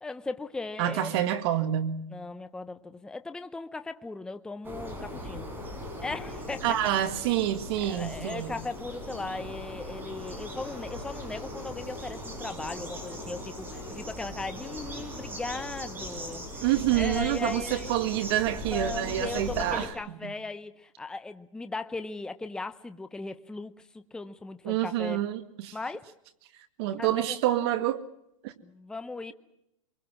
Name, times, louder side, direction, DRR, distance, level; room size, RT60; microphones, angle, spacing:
voice 1, 0.0-1.2 2.1-5.5 6.0-6.8 7.8-16.7 16.9-17.9 18.7-25.2 25.7-26.0 27.0-27.4 28.6-29.3, left 3 dB, 5° left, 10 dB, 0.8 m, -38 dB
voice 2, 0.8-2.1 6.6-8.6 16.6-19.9 20.2-20.3 24.6-25.8 26.8-28.1 28.4-28.5, right 12 dB, 50° right, 10 dB, 1.9 m, -27 dB
sound 1, 4.6-19.9, left 1 dB, 10° right, 6.6 m, -39 dB
26.5 x 23.0 x 6.1 m, 0.81 s
supercardioid pair, 150°, 17 cm